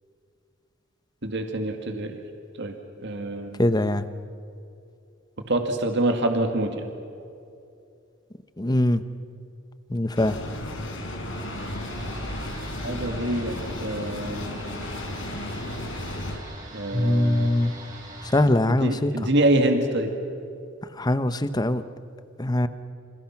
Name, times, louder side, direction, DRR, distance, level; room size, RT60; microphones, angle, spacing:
voice 1, 1.2-2.1 2.6-2.7 3.0-3.6 5.5-6.9 12.8-14.4 16.7-17.5 18.8-20.1, right 1 dB, 60° right, 5 dB, 2.1 m, -25 dB
voice 2, 3.6-4.1 8.6-9.0 9.9-10.4 16.9-17.7 18.2-19.3 20.9-21.8 22.4-22.7, left 1 dB, 20° left, 12 dB, 0.9 m, -22 dB
sound 1, 10.1-16.4, left 1 dB, 70° left, 4.4 m, -34 dB
sound 2, 11.3-18.4, right 1 dB, 40° right, 6.7 m, -42 dB
29.0 x 27.0 x 6.0 m, 2.6 s
head